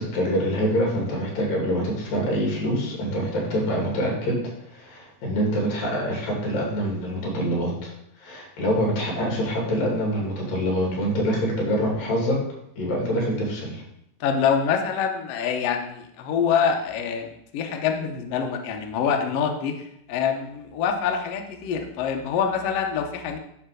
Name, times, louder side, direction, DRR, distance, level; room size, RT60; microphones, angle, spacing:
voice 1, 0.0-7.9 8.2-12.4 12.8-13.8, equal, 75° left, -1 dB, 3.9 m, -25 dB
voice 2, 14.2-23.4, left 7 dB, 90° left, 4 dB, 1.3 m, -25 dB
9.3 x 3.3 x 6.3 m, 0.77 s
omnidirectional pair, 4.0 m